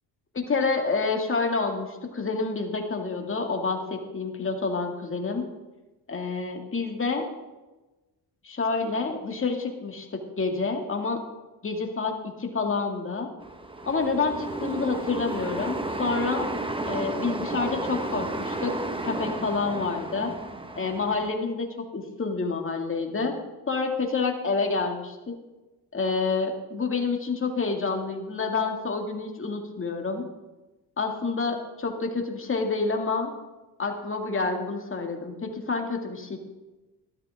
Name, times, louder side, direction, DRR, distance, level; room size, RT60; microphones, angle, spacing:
voice 1, 0.4-5.5 6.1-7.3 8.4-11.2 11.6-12.1 12.4-13.3 13.9-16.5 16.9-18.7 19.0-20.3 20.8-23.3 23.7-25.3 25.9-30.3 31.0-33.3 33.8-36.4, left 4 dB, 30° left, 3 dB, 2.2 m, -28 dB
sound 1, 13.4-21.3, right 2 dB, 15° right, 1.3 m, -32 dB
13.0 x 12.5 x 3.6 m, 1.1 s
cardioid pair, 80°, 40 cm